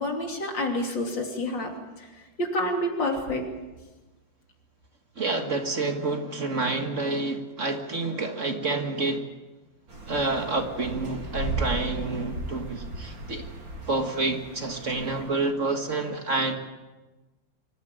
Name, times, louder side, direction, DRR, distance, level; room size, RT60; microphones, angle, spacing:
voice 1, 0.0-3.4, left 1 dB, 70° left, 2 dB, 3.7 m, -29 dB
voice 2, 5.2-9.2 10.1-13.5 13.9-16.5, right 3 dB, 40° right, 5 dB, 1.8 m, -28 dB
sound 1, 9.9-15.3, right 2 dB, 80° right, 3.9 m, -36 dB
24.5 x 14.5 x 9.0 m, 1.2 s
omnidirectional pair, 2.0 m